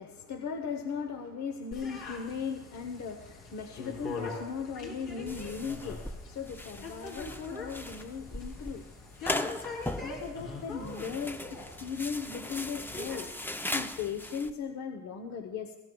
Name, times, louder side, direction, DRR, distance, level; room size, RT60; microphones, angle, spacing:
voice 1, 0.0-8.8 9.3-9.5 9.9-15.8, left 6 dB, 65° left, 5 dB, 0.9 m, -38 dB
sound 1, 1.7-13.3, left 3 dB, 90° left, 3.3 m, -43 dB
sound 2, 5.3-14.5, left 1 dB, 5° left, 0.5 m, -39 dB
21.0 x 15.5 x 2.3 m, 1.1 s
cardioid pair, 90°, 30 cm